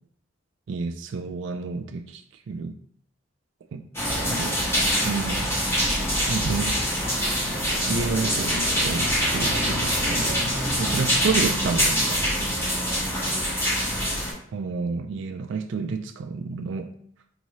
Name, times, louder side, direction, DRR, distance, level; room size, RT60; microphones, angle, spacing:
voice 1, 0.7-2.7 3.7-3.8 4.4-4.6 5.0-5.5 6.2-6.7 7.9-10.4 10.8-12.2 14.5-16.9, right 4 dB, 65° right, 7 dB, 0.3 m, -30 dB
sound 1, 4.0-14.3, equal, 10° left, 0.9 m, -24 dB
4.6 x 2.7 x 3.1 m, 0.63 s
head